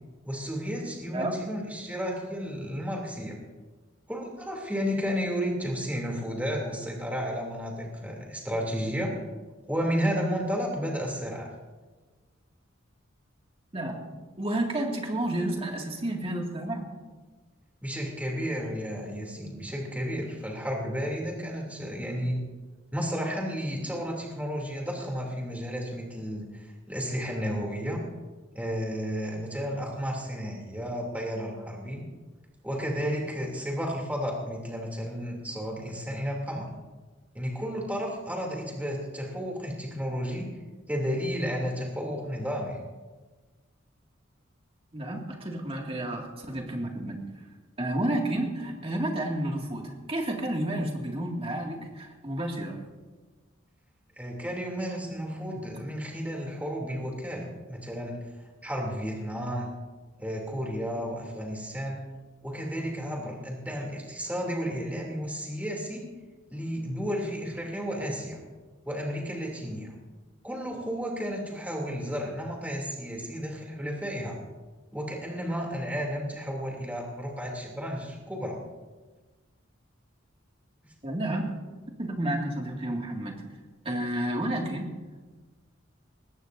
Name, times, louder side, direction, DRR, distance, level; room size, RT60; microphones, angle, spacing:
voice 1, 0.2-3.4 4.1-9.2 9.7-11.5 17.8-22.4 22.9-28.0 28.5-32.0 32.6-36.7 37.3-40.5 40.9-42.8 54.2-58.2 58.6-59.7 60.2-62.0 62.4-66.0 66.5-68.4 68.9-69.9 70.4-74.4 74.9-78.6, equal, 10° right, -1 dB, 3.0 m, -32 dB
voice 2, 13.7-16.8 44.9-47.2 47.8-52.8 81.0-81.5 82.0-83.4 83.8-84.9, right 1 dB, 30° right, 0 dB, 2.3 m, -31 dB
21.0 x 16.5 x 2.7 m, 1.3 s
head